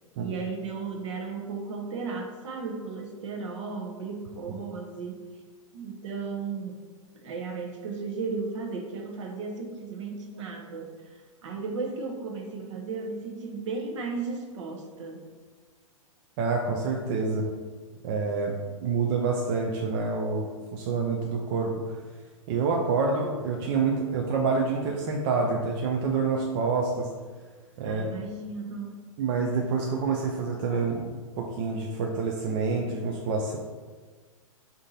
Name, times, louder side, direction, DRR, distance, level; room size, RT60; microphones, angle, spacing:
voice 1, 0.2-5.2 5.7-6.8 7.2-15.3 27.8-29.0, right 4 dB, 60° right, 2 dB, 0.8 m, -35 dB
voice 2, 16.4-17.5 18.0-18.5 18.8-21.7 22.5-27.1 27.8-28.1 29.2-31.1 31.4-33.6, right 4 dB, 40° right, 0 dB, 0.4 m, -27 dB
3.5 x 2.7 x 4.0 m, 1.4 s
figure-of-eight pair, 110°, 18 cm